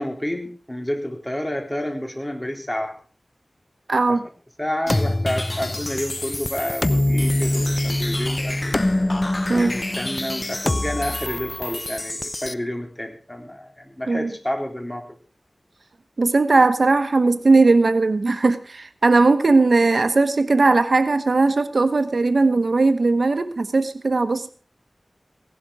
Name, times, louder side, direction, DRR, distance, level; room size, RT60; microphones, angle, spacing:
voice 1, 0.0-2.9 4.1-4.2 4.6-8.7 9.5-15.0, left 1 dB, 15° left, 3 dB, 3.7 m, -29 dB
voice 2, 3.9-4.2 9.5-9.8 14.1-14.3 16.2-24.5, right 3 dB, 80° right, 11 dB, 1.1 m, -18 dB
sound 1, 4.9-12.5, left 1 dB, 35° left, 0.8 m, -24 dB
17.0 x 12.0 x 4.9 m, 0.37 s
wide cardioid pair, 55°, 0 cm